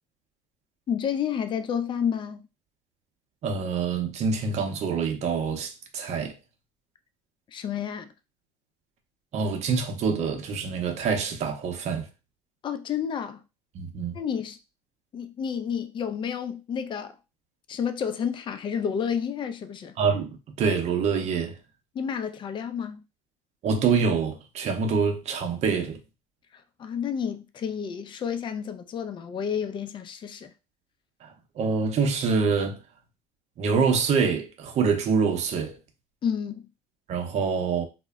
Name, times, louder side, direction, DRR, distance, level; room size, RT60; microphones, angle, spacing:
voice 1, 0.9-2.4 7.5-8.1 12.6-13.4 14.1-14.6 15.1-17.2 17.7-19.9 21.9-23.0 26.5-30.5 36.2-36.7, left 7 dB, 30° left, 0.4 m, -30 dB
voice 2, 3.4-6.3 9.3-12.1 13.7-14.2 20.0-21.6 23.6-26.0 31.2-32.8 33.6-35.8 37.1-37.9, right 5 dB, 50° right, 0.7 m, -26 dB
2.1 x 2.0 x 3.4 m
supercardioid pair, 85°, 15 cm